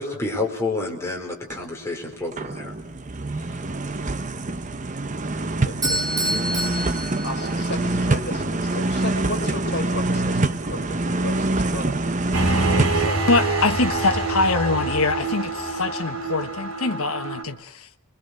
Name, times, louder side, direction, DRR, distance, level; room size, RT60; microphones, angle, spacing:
voice 1, 0.0-2.7, left 2 dB, 10° left, 4.7 m, -29 dB
sound 1, 1.5-1.7 2.1-13.1, right 2 dB, 35° right, 0.9 m, -25 dB
voice 2, 5.6-6.7 6.9-11.9 12.2-13.3, left 2 dB, 50° left, 5.6 m, -34 dB
Bell / Doorbell, 5.8-7.9, right 1 dB, 15° right, 3.2 m, -27 dB
sound 2, 12.3-17.4, right 3 dB, 75° right, 5.1 m, -26 dB
voice 3, 13.3-17.9, left 3 dB, 70° left, 1.3 m, -23 dB
29.0 x 22.0 x 6.6 m
head